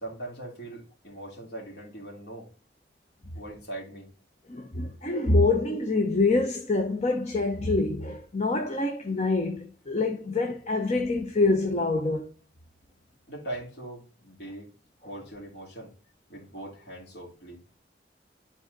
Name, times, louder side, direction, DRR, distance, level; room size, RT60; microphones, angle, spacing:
voice 1, 0.0-2.5 3.3-4.1 13.3-14.7 15.0-15.9 16.3-17.6, right 1 dB, 60° left, 2.9 m, -40 dB
voice 2, 4.5-12.2, left 3 dB, 35° left, 0.9 m, -26 dB
11.0 x 4.2 x 4.0 m
head